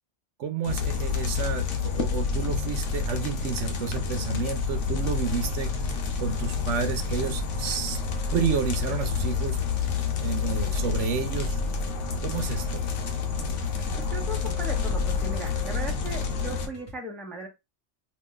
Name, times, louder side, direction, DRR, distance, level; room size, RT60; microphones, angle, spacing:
voice 1, 0.4-5.7 6.2-8.0 8.3-9.6 10.2-11.6 12.2-12.9, right 6 dB, 85° right, 0.9 m, -30 dB
sound 1, 0.6-16.7, left 5 dB, 85° left, 1.0 m, -29 dB
sound 2, 1.1-17.0, right 1 dB, 35° left, 1.2 m, -45 dB
voice 2, 13.9-17.5, right 1 dB, ahead, 0.5 m, -37 dB
2.6 x 2.4 x 3.6 m
omnidirectional pair, 1.2 m